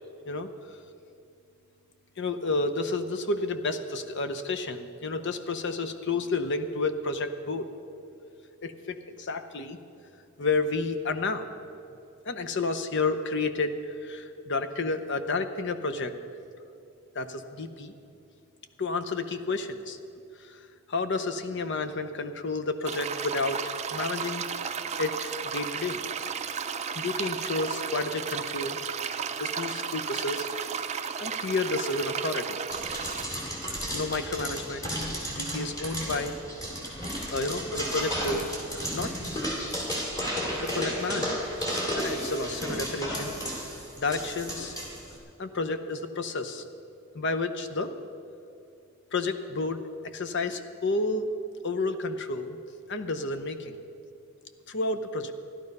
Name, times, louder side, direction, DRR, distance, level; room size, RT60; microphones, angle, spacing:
voice 1, 0.3-0.8 2.2-7.7 8.6-9.8 10.4-11.5 12.3-16.1 17.1-17.9 18.8-20.0 20.4-20.6 20.9-26.0 26.9-28.8 29.4-30.5 30.9-32.6 33.4-33.5 33.9-36.4 37.3-39.1 40.6-41.4 41.9-44.7 45.4-46.6 47.1-47.9 49.1-49.8 50.1-51.3 51.6-52.6 52.9-53.8 54.7-55.3, left 3 dB, 55° left, 8 dB, 0.8 m, -31 dB
sound 1, 22.8-33.3, right 7 dB, 30° right, 0.5 m, -33 dB
sound 2, 32.7-45.2, equal, 15° left, 2.5 m, -33 dB
14.5 x 11.5 x 5.4 m, 2.6 s
head